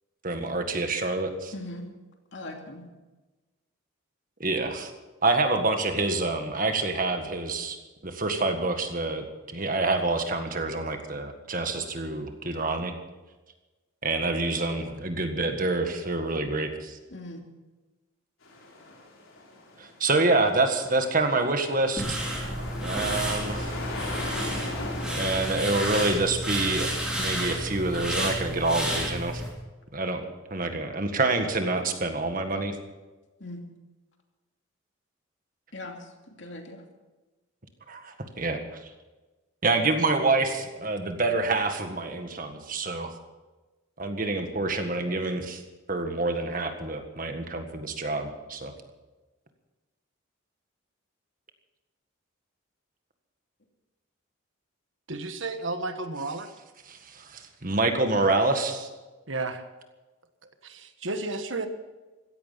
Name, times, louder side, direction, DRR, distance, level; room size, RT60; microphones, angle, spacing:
voice 1, 0.2-1.5 4.4-4.9 5.2-7.8 8.0-12.9 14.0-17.0 19.8-22.2 22.8-23.8 25.1-29.4 29.9-32.7 37.9-38.8 39.6-43.1 44.0-45.6 45.9-48.7 56.9-58.9, right 2 dB, 40° right, 6 dB, 1.7 m, -27 dB
voice 2, 1.5-1.9 2.3-2.9 17.1-17.4 33.4-33.6 35.7-36.8, left 1 dB, 60° left, 2 dB, 2.7 m, -40 dB
sound 1, 18.4-26.5, left 2 dB, 80° left, 4.1 m, -39 dB
sound 2, 22.0-29.5, equal, 5° right, 3.6 m, -31 dB
voice 3, 55.1-56.5 59.3-59.6 60.6-61.7, right 3 dB, 65° right, 8 dB, 1.4 m, -32 dB
16.0 x 14.5 x 5.8 m, 1.2 s
head